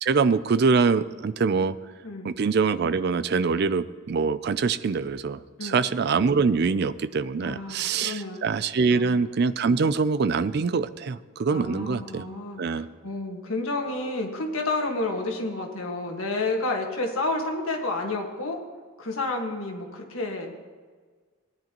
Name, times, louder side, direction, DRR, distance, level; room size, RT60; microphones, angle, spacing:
voice 1, 0.0-1.7 2.2-12.3 12.6-12.9, right 5 dB, 50° right, 15 dB, 0.4 m, -24 dB
voice 2, 7.4-8.5 8.9-9.2 11.5-18.6 19.0-20.7, left 2 dB, 75° left, 1 dB, 1.7 m, -30 dB
17.5 x 10.0 x 3.0 m, 1.5 s
head